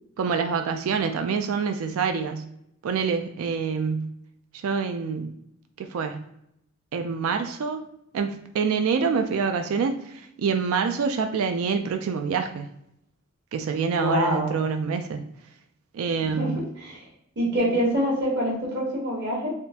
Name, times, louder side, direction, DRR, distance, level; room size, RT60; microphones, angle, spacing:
voice 1, 0.2-2.5 2.8-4.1 4.5-5.3 5.8-6.2 6.9-7.8 8.1-12.7 13.5-15.2 15.9-16.6, right 5 dB, 85° right, 6 dB, 0.3 m, -26 dB
voice 2, 13.9-14.6 16.2-17.0 17.4-19.5, equal, 55° right, -3 dB, 1.3 m, -26 dB
3.5 x 2.4 x 2.7 m, 0.78 s
head